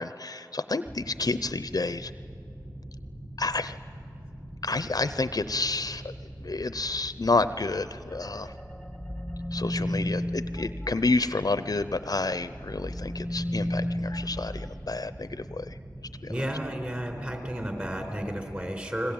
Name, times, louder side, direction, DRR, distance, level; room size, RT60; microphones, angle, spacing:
voice 1, 0.0-2.1 3.4-3.8 4.6-6.1 6.4-8.5 9.5-16.3, left 3 dB, 60° left, 13 dB, 0.6 m, -30 dB
sound 1, 0.8-18.6, right 1 dB, 50° right, 4.2 m, -44 dB
sound 2, 8.1-12.0 12.4-15.7, left 1 dB, 5° left, 1.2 m, -34 dB
voice 2, 16.3-19.1, equal, 20° right, 4 dB, 4.7 m, -32 dB
29.5 x 21.0 x 8.8 m, 2.5 s
wide cardioid pair, 55°, 7 cm